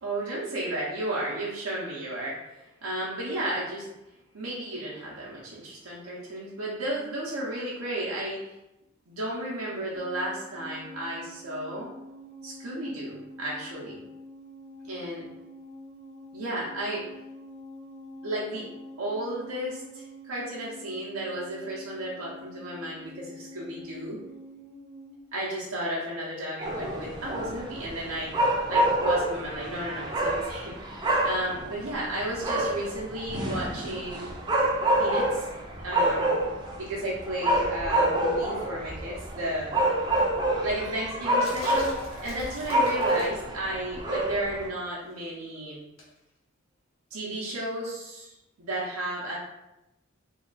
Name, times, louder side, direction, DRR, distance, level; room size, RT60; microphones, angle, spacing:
voice 1, 0.0-3.9 4.3-8.5 9.1-11.9 12.4-14.0 14.8-15.3 16.3-17.1 18.2-18.7 19.0-24.2 25.3-28.3 28.7-30.7 31.2-34.3 35.0-35.5 35.8-36.3 36.8-39.9 40.6-41.9 42.2-45.8 47.1-49.4, right 1 dB, 85° right, -5 dB, 0.7 m, -33 dB
sound 1, 10.0-25.3, equal, 25° left, 0.7 m, -46 dB
sound 2, 26.6-44.7, right 1 dB, 20° right, 0.4 m, -27 dB
sound 3, 41.4-43.5 46.0-46.2, left 1 dB, 75° left, 0.9 m, -45 dB
2.8 x 2.3 x 3.9 m, 0.92 s
head